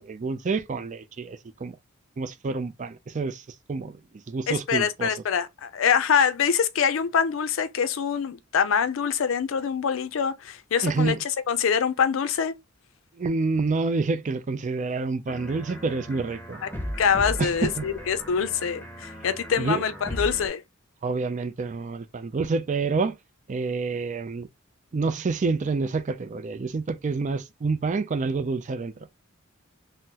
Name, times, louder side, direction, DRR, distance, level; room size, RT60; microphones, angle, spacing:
voice 1, 0.0-1.8 2.2-4.0 4.3-5.1 10.8-11.2 13.2-16.6 17.4-17.9 19.6-19.8 21.0-23.2 23.5-24.5 24.9-28.9, right 4 dB, 35° right, 0.4 m, -28 dB
voice 2, 4.5-11.2 11.5-12.5 16.6-16.7 17.0-20.6, left 7 dB, 65° left, 0.4 m, -24 dB
sound 1, 15.3-20.5, equal, 10° left, 0.7 m, -37 dB
3.7 x 2.0 x 2.8 m
head